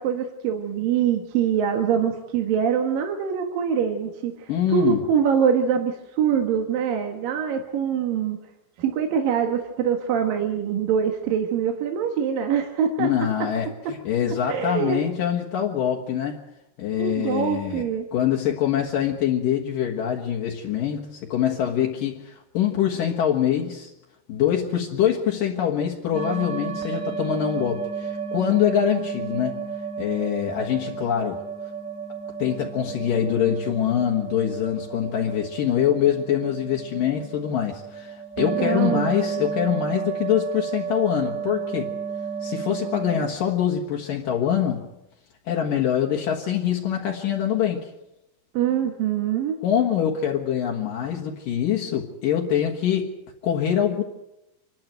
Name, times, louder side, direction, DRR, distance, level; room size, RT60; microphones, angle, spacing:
voice 1, 0.0-8.4 8.8-13.1 14.5-15.0 17.0-18.1 38.4-39.1 48.5-49.6, right 8 dB, 70° right, 3.1 m, -24 dB
voice 2, 4.5-5.0 13.0-16.4 16.8-23.9 24.3-29.6 30.0-31.4 32.4-41.9 42.4-44.8 45.5-47.9 49.6-53.2 53.4-54.0, left 9 dB, 65° left, 3.1 m, -24 dB
sound 1, 26.1-43.3, right 6 dB, 25° right, 3.3 m, -32 dB
26.5 x 12.0 x 9.2 m
omnidirectional pair, 4.3 m